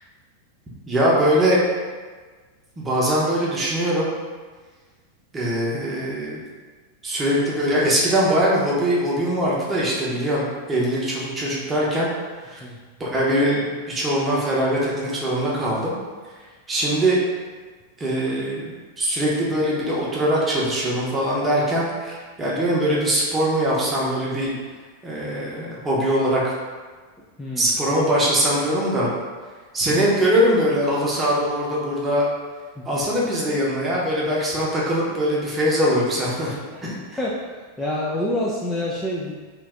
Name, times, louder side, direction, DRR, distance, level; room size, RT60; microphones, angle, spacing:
voice 1, 0.9-1.6 2.8-4.1 5.3-6.4 7.0-12.1 12.4-12.6 13.0-15.9 16.7-17.2 18.0-24.5 25.0-26.5 27.6-29.1 29.7-32.3 32.8-36.6 36.8-36.9, equal, 15° right, -5 dB, 0.8 m, -22 dB
voice 2, 27.2-27.7 32.8-33.0 36.7-37.4 37.8-39.3, left 1 dB, 10° left, -6 dB, 0.4 m, -28 dB
3.1 x 2.5 x 3.6 m, 1.4 s
figure-of-eight pair, 90°, 0 cm